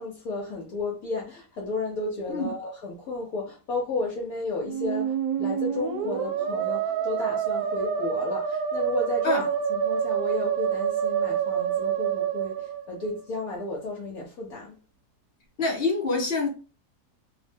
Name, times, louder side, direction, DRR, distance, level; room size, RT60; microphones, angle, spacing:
voice 1, 0.0-14.7, left 3 dB, 70° left, 1.1 m, -33 dB
Musical instrument, 4.6-13.4, right 8 dB, 75° right, 1.0 m, -27 dB
voice 2, 15.6-16.5, left 3 dB, 50° left, 0.8 m, -25 dB
2.7 x 2.1 x 3.4 m
omnidirectional pair, 1.7 m